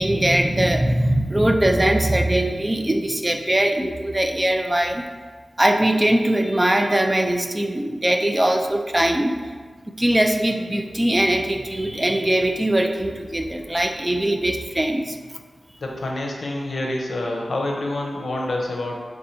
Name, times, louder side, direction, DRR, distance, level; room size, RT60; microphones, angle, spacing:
voice 1, 0.0-5.0 5.6-9.4 10.0-15.2, right 1 dB, 20° right, 5 dB, 0.3 m, -21 dB
voice 2, 15.8-19.0, left 1 dB, 75° left, 0 dB, 0.6 m, -27 dB
3.5 x 2.6 x 4.3 m, 1.5 s
cardioid pair, 45°, 0 cm